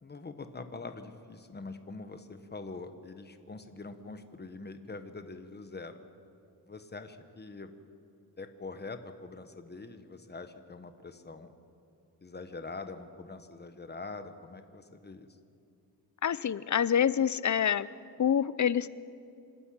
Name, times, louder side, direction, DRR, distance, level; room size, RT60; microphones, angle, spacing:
voice 1, 0.0-6.0 6.6-7.7 8.4-11.5 12.2-15.3, left 3 dB, 25° left, 8 dB, 1.2 m, -44 dB
voice 2, 16.2-17.9 18.2-18.9, left 8 dB, 50° left, 18 dB, 0.6 m, -26 dB
26.5 x 12.5 x 8.7 m, 2.4 s
wide cardioid pair, 115°, 37 cm